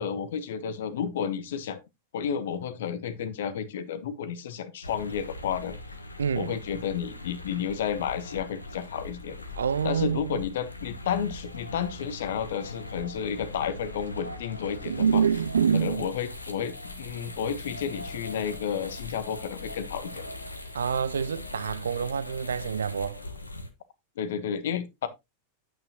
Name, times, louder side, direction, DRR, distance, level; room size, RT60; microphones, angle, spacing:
voice 1, 0.0-1.8 2.1-5.8 6.3-9.4 9.8-15.2 15.7-20.2 24.2-25.1, left 8 dB, 60° left, 1.2 m, -31 dB
sound 1, 4.8-23.7, left 2 dB, 80° left, 1.2 m, -41 dB
voice 2, 6.2-6.6 9.5-10.4 14.8-16.1 20.7-23.2, right 7 dB, 70° right, 0.4 m, -26 dB
8.9 x 8.9 x 2.8 m
figure-of-eight pair, 90°, 0 cm